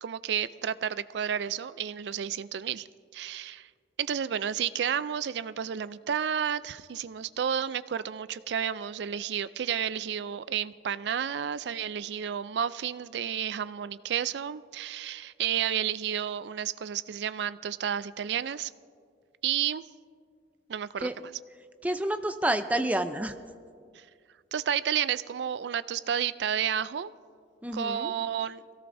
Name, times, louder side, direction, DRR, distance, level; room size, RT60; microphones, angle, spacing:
voice 1, 0.0-2.9 3.1-3.7 4.0-18.7 19.4-19.9 20.7-21.3 24.0-24.1 24.5-27.1 27.7-28.6, right 8 dB, 75° right, 16 dB, 0.4 m, -31 dB
voice 2, 21.8-23.3 27.6-28.1, right 1 dB, 10° right, 9 dB, 0.5 m, -29 dB
22.5 x 17.0 x 2.6 m, 2.1 s
head